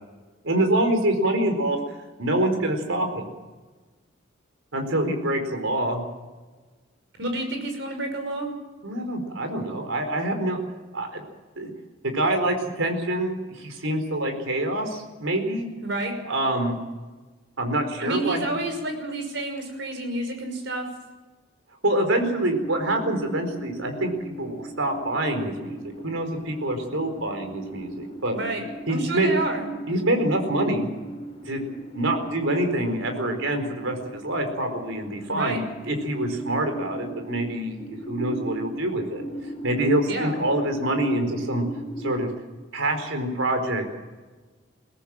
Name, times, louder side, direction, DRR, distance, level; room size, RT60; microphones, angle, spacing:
voice 1, 0.4-1.8 2.2-3.3 4.7-6.0 8.8-10.6 10.9-11.2 11.6-11.7 12.0-15.7 16.2-16.8 17.6-18.6 21.8-25.8 26.0-28.3 28.9-29.3 29.9-30.9 31.5-31.6 31.9-39.2 39.6-41.6 42.0-42.3 42.7-43.9, right 1 dB, 85° right, 5 dB, 4.5 m, -26 dB
voice 2, 7.2-8.5 15.8-16.1 18.0-20.9 28.3-28.6 28.9-29.7 35.3-35.6 40.1-40.4, right 2 dB, 60° right, 5 dB, 5.8 m, -29 dB
sound 1, 22.5-42.2, right 1 dB, 30° left, 3.8 m, -38 dB
22.5 x 18.0 x 7.5 m, 1.3 s
head